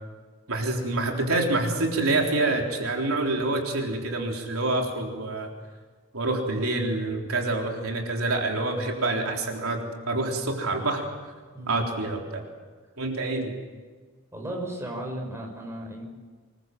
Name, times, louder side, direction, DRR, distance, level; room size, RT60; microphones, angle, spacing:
voice 1, 0.5-5.5 6.1-9.8 10.1-11.0 11.7-12.4 13.0-13.5, right 2 dB, 75° right, 1 dB, 3.8 m, -27 dB
voice 2, 14.3-16.1, right 1 dB, 10° right, 0 dB, 6.2 m, -35 dB
26.0 x 22.5 x 7.8 m, 1.4 s
head